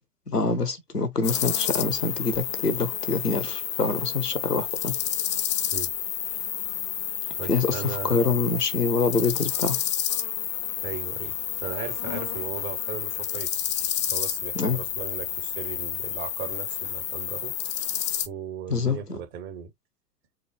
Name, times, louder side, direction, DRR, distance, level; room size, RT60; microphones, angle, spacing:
voice 1, 0.3-5.0 7.5-9.8 14.5-14.8 18.7-19.2, left 4 dB, 85° left, 1.2 m, -25 dB
sound 1, 1.2-18.3, left 11 dB, 20° left, 0.3 m, -30 dB
voice 2, 7.4-8.2 10.8-13.6 14.1-17.6 18.3-19.7, right 8 dB, 45° right, 2.3 m, -37 dB
4.7 x 2.4 x 4.5 m
figure-of-eight pair, 95°, 46 cm